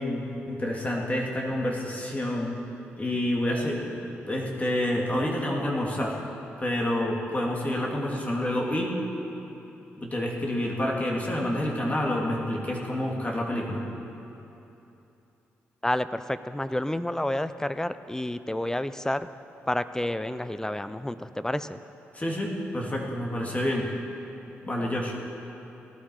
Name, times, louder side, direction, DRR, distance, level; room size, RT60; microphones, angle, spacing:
voice 1, 0.0-2.6 3.0-4.0 4.3-6.2 6.6-8.9 10.0-13.8 22.1-23.9 24.6-25.1, left 1 dB, 25° left, -2 dB, 2.8 m, -28 dB
voice 2, 15.8-19.3 19.7-21.8, left 1 dB, 10° left, 13 dB, 0.6 m, -29 dB
18.0 x 12.0 x 4.8 m, 2.9 s
supercardioid pair, 45°, 5 cm